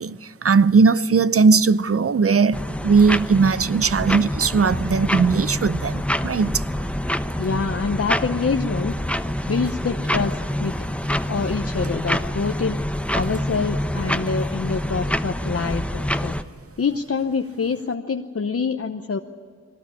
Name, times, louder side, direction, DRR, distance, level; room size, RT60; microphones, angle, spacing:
voice 1, 0.0-6.6, right 5 dB, 50° right, 0.7 m, -18 dB
sound 1, 2.5-16.4, equal, 5° left, 0.9 m, -26 dB
voice 2, 7.4-8.9 9.4-10.7 11.3-12.8 13.1-16.3 16.8-19.2, left 5 dB, 50° left, 0.9 m, -26 dB
21.5 x 18.5 x 9.7 m
cardioid pair, 55°, 29 cm